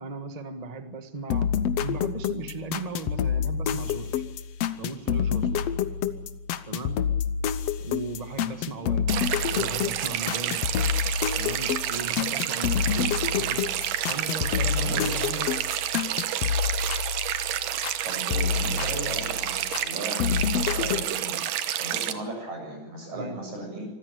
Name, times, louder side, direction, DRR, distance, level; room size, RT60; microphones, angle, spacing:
voice 1, 0.0-1.5 1.8-4.2 4.8-5.6 6.7-7.0 7.8-9.2 9.5-10.6 11.3-13.7 14.1-15.5 23.1-23.4, right 3 dB, 30° right, 8 dB, 0.7 m, -37 dB
sound 1, 1.3-18.0 18.3-19.9 20.2-21.0, left 8 dB, 65° left, 1.8 m, -28 dB
sound 2, 9.1-22.1, right 11 dB, 85° right, 2.8 m, -29 dB
voice 2, 18.0-23.9, right 2 dB, 65° right, 2 dB, 8.9 m, -37 dB
25.5 x 14.5 x 8.2 m, 1.0 s
omnidirectional pair, 3.6 m